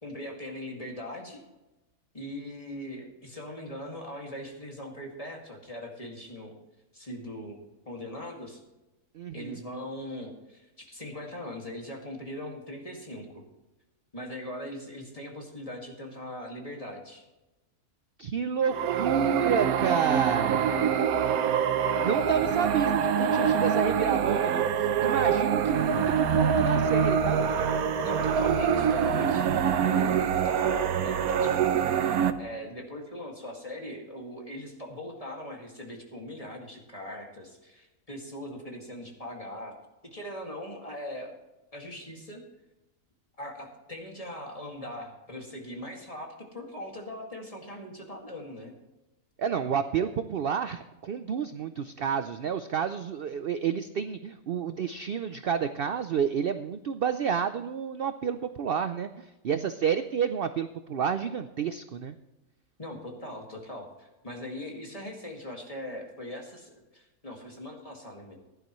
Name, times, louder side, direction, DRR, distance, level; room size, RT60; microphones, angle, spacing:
voice 1, 0.0-1.4 2.1-6.6 6.9-7.6 7.9-8.6 9.3-13.4 14.1-17.2 28.0-31.9 32.4-39.7 40.0-41.3 41.7-42.4 43.4-48.8 62.8-68.4, left 1 dB, 25° left, 0 dB, 2.2 m, -40 dB
voice 2, 9.1-9.6 18.2-20.9 22.0-24.7 25.0-27.4 49.4-62.2, right 7 dB, 60° right, 10 dB, 0.6 m, -30 dB
sound 1, 18.7-32.3, right 7 dB, 90° right, 1.2 m, -25 dB
16.0 x 11.5 x 3.1 m, 1.0 s
omnidirectional pair, 1.5 m